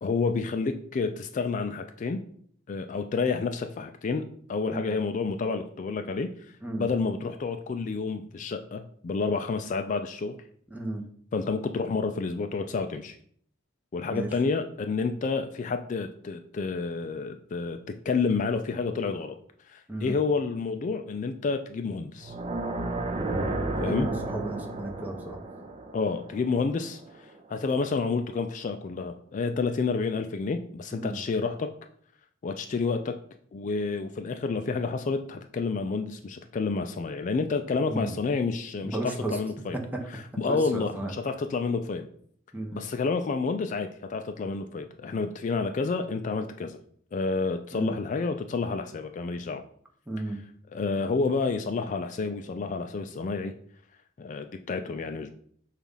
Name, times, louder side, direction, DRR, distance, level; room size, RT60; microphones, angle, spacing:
voice 1, 0.0-2.2 2.7-6.3 6.8-10.4 11.3-13.2 13.9-17.8 18.0-19.3 19.7-22.3 23.8-24.1 25.9-31.7 32.4-33.2 33.5-39.8 40.1-42.1 42.7-46.8 47.1-49.6 50.7-53.5 54.2-55.3, left 4 dB, 40° left, 7 dB, 0.3 m, -29 dB
voice 2, 10.7-11.0 14.1-14.3 19.9-20.1 23.9-25.4 30.9-31.2 34.6-34.7 37.9-38.2 38.8-39.4 39.7-40.0 40.5-41.1 42.5-42.8 47.7-48.0 50.1-50.4, right 2 dB, 10° right, 1 dB, 0.8 m, -34 dB
sound 1, 22.2-27.3, right 2 dB, 30° right, 0.5 m, -33 dB
7.0 x 2.4 x 5.5 m, 0.62 s
head